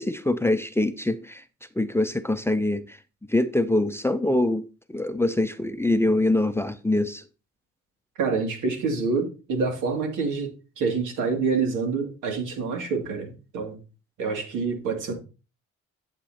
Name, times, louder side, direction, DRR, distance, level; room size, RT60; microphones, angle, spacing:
voice 1, 0.0-1.4 1.8-3.0 3.3-4.6 4.9-7.2, left 2 dB, 10° left, 0.6 m, -24 dB
voice 2, 8.2-13.8 14.2-15.1, right 4 dB, 85° right, 2.6 m, -27 dB
11.0 x 7.5 x 2.9 m
cardioid pair, 90°, 30 cm